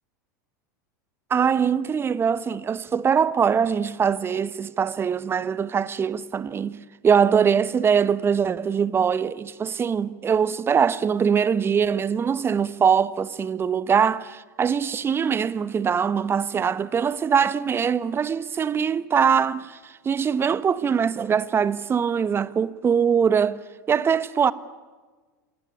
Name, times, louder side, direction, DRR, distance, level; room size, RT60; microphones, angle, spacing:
voice 1, 1.3-6.8 7.0-23.6 23.9-24.5, right 7 dB, 25° right, 1.1 m, -22 dB
27.0 x 18.5 x 10.0 m
figure-of-eight pair, 85°, 10 cm